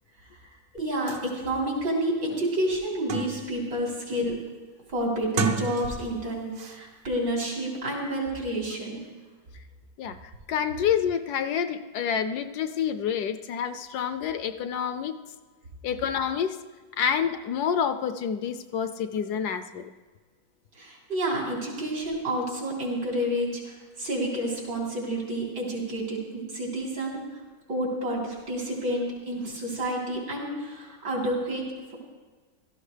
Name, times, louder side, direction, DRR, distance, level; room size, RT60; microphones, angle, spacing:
voice 1, 0.7-4.4 4.9-9.0 20.7-27.2 27.7-32.0, right 1 dB, 85° right, -3 dB, 4.1 m, -29 dB
sound 1, 0.8-0.9 1.1-1.2 1.8-1.9 2.3-3.6 4.0-4.4 5.2-6.2 6.5-6.8, right 4 dB, 60° right, 0.6 m, -32 dB
voice 2, 10.5-15.2 15.8-16.6 17.0-19.9, left 8 dB, 70° left, 9 dB, 1.1 m, -28 dB
16.5 x 13.0 x 3.3 m, 1.4 s
omnidirectional pair, 1.9 m